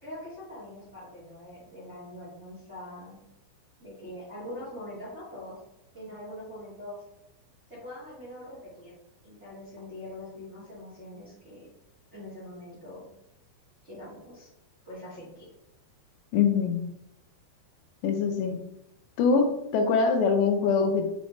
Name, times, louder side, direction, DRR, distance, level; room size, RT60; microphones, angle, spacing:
voice 1, 0.0-3.2 3.8-5.5 5.9-7.0 7.7-8.9 9.2-11.7 12.1-13.0 13.8-14.5 14.8-15.5, left 1 dB, 35° right, -9 dB, 1.1 m, -43 dB
voice 2, 16.3-16.9 18.0-18.6 19.2-21.1, left 5 dB, 80° left, 6 dB, 2.7 m, -24 dB
7.1 x 4.2 x 3.2 m, 0.83 s
omnidirectional pair, 5.3 m